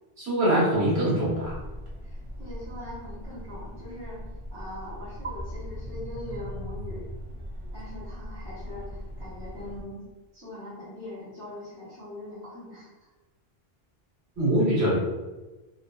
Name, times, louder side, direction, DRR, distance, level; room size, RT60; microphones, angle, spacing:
voice 1, 0.2-1.5 14.4-15.0, right 1 dB, 90° right, -6 dB, 1.4 m, -23 dB
sound 1, 1.4-9.8, equal, 40° right, 0.5 m, -39 dB
voice 2, 2.0-7.0 7.7-10.1 10.3-13.1, left 1 dB, 25° right, -11 dB, 1.2 m, -42 dB
2.8 x 2.8 x 2.2 m, 1.2 s
omnidirectional pair, 1.1 m